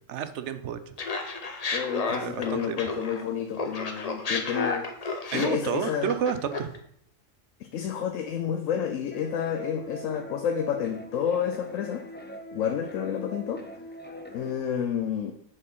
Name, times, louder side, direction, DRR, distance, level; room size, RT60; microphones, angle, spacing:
voice 1, 0.1-0.9 2.1-2.8 5.3-6.7, right 8 dB, 70° right, 11 dB, 0.9 m, -30 dB
Laughter, 1.0-3.3 3.6-6.8, left 3 dB, 35° left, 0.7 m, -31 dB
voice 2, 1.7-6.1 7.7-12.0 12.5-13.6 14.3-15.3, left 8 dB, 80° left, 5 dB, 1.0 m, -30 dB
sound 1, 9.1-14.6, equal, 15° left, 0.3 m, -42 dB
7.4 x 4.3 x 5.4 m, 0.69 s
omnidirectional pair, 1.3 m